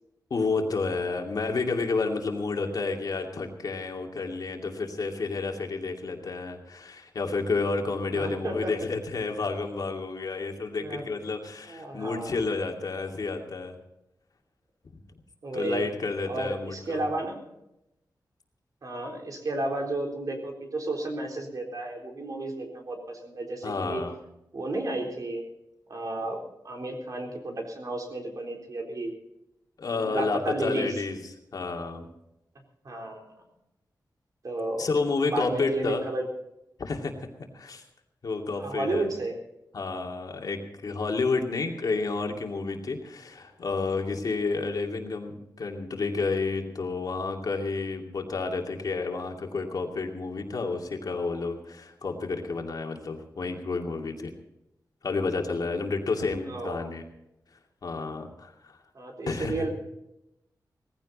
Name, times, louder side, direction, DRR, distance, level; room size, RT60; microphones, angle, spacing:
voice 1, 0.3-13.7 15.5-17.0 23.6-24.2 29.8-31.2 31.5-32.1 34.8-36.0 36.8-37.3 37.5-37.8 38.2-39.1 39.7-54.3 55.0-57.0 57.8-58.8 59.3-59.5, left 4 dB, 60° left, 2 dB, 2.5 m, -30 dB
voice 2, 8.1-8.8 10.8-11.0 11.7-12.4 15.4-15.9 16.3-17.5 18.8-24.0 24.5-25.4 25.9-26.4 26.6-29.1 29.9-30.9 32.8-33.3 34.4-34.9 35.3-36.3 38.6-39.4 56.4-56.9 58.9-59.7, right 2 dB, 55° right, 1 dB, 3.9 m, -32 dB
19.0 x 15.5 x 4.2 m, 0.85 s
wide cardioid pair, 155°, 7 cm